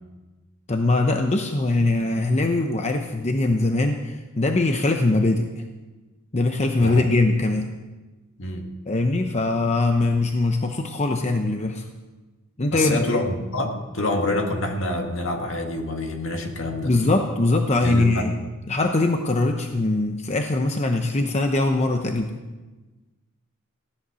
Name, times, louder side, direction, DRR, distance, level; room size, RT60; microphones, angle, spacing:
voice 1, 0.7-5.5 6.3-7.7 8.9-11.8 12.6-13.0 16.8-18.3 18.7-22.3, left 2 dB, 30° left, 4 dB, 0.8 m, -22 dB
voice 2, 8.4-8.7 12.7-16.9 17.8-18.3, left 2 dB, 65° left, 3 dB, 2.0 m, -26 dB
16.0 x 11.0 x 6.3 m, 1.2 s
head